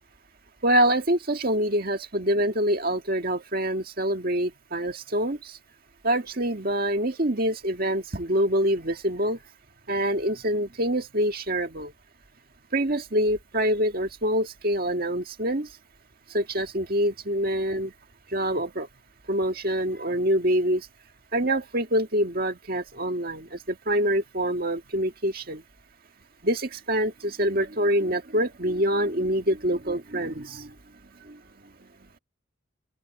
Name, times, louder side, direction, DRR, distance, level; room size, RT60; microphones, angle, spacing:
voice 1, 0.6-5.6 6.0-9.4 9.9-11.9 12.7-15.7 16.3-17.9 18.3-18.9 19.3-20.9 21.3-25.6 26.4-30.7 31.3-31.4, equal, 45° right, 1.8 m, -25 dB
open air
head